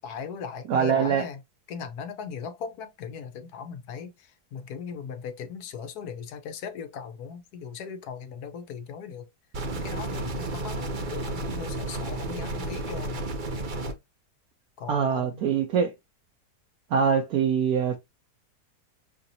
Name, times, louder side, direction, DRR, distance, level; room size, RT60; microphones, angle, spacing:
voice 1, 0.0-1.4 1.7-9.3 9.7-13.3 14.8-15.5, left 6 dB, 70° left, 1.3 m, -38 dB
voice 2, 0.7-1.2 14.9-15.9 16.9-18.0, right 7 dB, 70° right, 1.1 m, -23 dB
sound 1, 9.5-13.9, right 2 dB, 50° right, 0.6 m, -32 dB
5.8 x 2.9 x 2.7 m
omnidirectional pair, 1.7 m